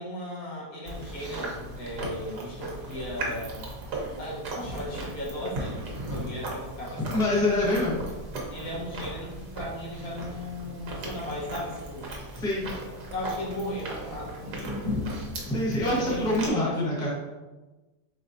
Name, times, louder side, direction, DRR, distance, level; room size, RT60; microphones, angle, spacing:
voice 1, 0.0-3.7 4.2-5.8 6.1-7.2 8.5-12.1 13.1-14.9 15.8-17.1, left 1 dB, 60° left, -5 dB, 1.6 m, -36 dB
Chewing mastication, 0.9-16.5, right 1 dB, 70° right, 1.5 m, -37 dB
voice 2, 7.0-8.0 12.4-12.7 15.5-17.1, left 1 dB, 5° left, -6 dB, 0.7 m, -25 dB
4.7 x 3.9 x 2.6 m, 1.2 s
omnidirectional pair, 1.8 m